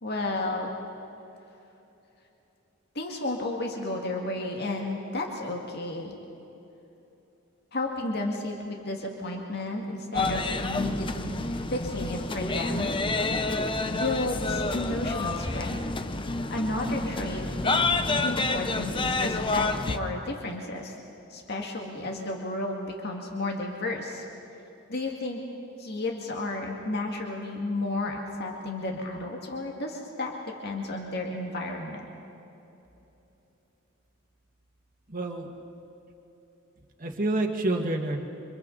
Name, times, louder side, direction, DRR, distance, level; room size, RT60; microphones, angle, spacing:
voice 1, 0.0-0.7 2.9-6.2 7.7-13.0 13.9-15.8 16.5-17.9 18.2-21.0 21.3-24.2 24.9-25.4 25.8-30.3 30.6-32.0, left 2 dB, 50° left, 1 dB, 2.0 m, -32 dB
sound 1, 10.1-20.0, left 3 dB, 25° left, 0.7 m, -29 dB
voice 2, 35.1-35.5 37.0-38.2, right 2 dB, 40° right, 2 dB, 1.9 m, -28 dB
28.5 x 25.5 x 4.0 m, 3.0 s
head